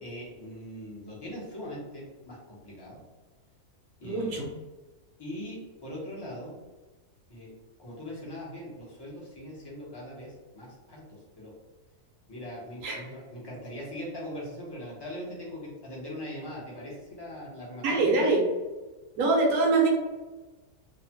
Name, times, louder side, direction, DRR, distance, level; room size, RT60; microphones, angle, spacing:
voice 1, 0.0-3.0 4.0-4.4 5.2-6.5 7.3-7.5 7.8-11.5 12.3-18.3, left 1 dB, 35° left, -5 dB, 0.4 m, -41 dB
voice 2, 4.0-4.5 12.8-13.0 17.8-18.4 19.2-19.9, right 3 dB, 75° right, -1 dB, 1.2 m, -24 dB
2.9 x 2.1 x 2.8 m, 1.2 s
omnidirectional pair, 1.6 m